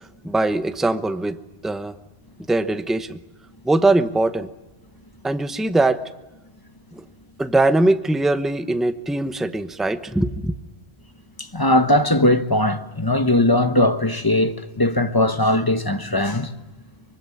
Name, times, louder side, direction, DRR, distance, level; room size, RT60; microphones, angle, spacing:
voice 1, 0.0-1.4 1.6-1.9 2.5-3.2 3.6-4.5 5.2-6.0 6.9-7.0 7.4-10.5, right 2 dB, ahead, 0.9 m, -21 dB
voice 2, 11.4-16.5, left 1 dB, 20° left, 1.2 m, -19 dB
24.5 x 24.0 x 9.9 m
omnidirectional pair, 1.1 m